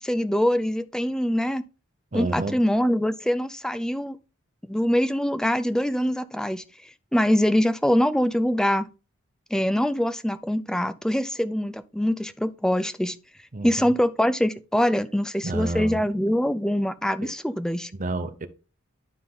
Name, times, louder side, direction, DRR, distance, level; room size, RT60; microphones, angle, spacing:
voice 1, 0.0-1.6 2.1-4.2 4.6-8.9 9.5-13.2 13.6-17.9, equal, 5° left, 0.3 m, -24 dB
voice 2, 2.1-2.6 13.5-13.9 15.4-16.1 17.2-17.3 17.9-18.5, right 2 dB, 35° right, 0.7 m, -30 dB
12.0 x 4.0 x 3.7 m
head